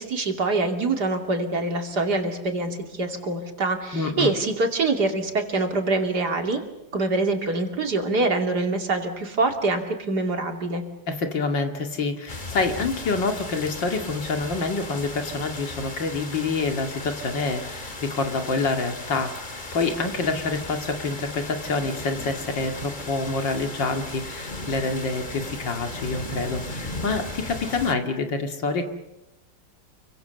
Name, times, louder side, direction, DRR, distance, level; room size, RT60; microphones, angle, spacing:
voice 1, 0.0-6.6 6.9-10.8, right 3 dB, 60° right, 4 dB, 3.2 m, -25 dB
voice 2, 3.9-4.3 11.1-28.8, left 3 dB, 75° left, 5 dB, 2.9 m, -27 dB
sound 1, 12.3-27.9, left 2 dB, 25° left, 2.3 m, -36 dB
29.0 x 24.0 x 6.9 m, 0.96 s
omnidirectional pair, 2.0 m